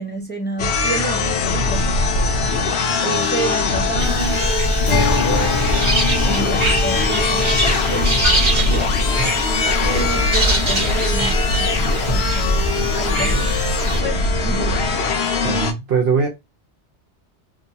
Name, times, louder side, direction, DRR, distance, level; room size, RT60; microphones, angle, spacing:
voice 1, 0.0-2.3 3.0-8.9 9.7-13.5 14.0-14.9, right 3 dB, 20° left, 0.3 m, -30 dB
sound 1, 0.6-15.7, left 3 dB, 65° left, 0.8 m, -21 dB
sound 2, 4.0-14.0, equal, 30° right, 0.8 m, -23 dB
Acoustic guitar, 4.9-10.3, left 3 dB, 90° left, 1.2 m, -28 dB
voice 2, 15.4-16.3, right 5 dB, 65° right, 0.9 m, -20 dB
2.8 x 2.1 x 2.6 m
omnidirectional pair, 1.2 m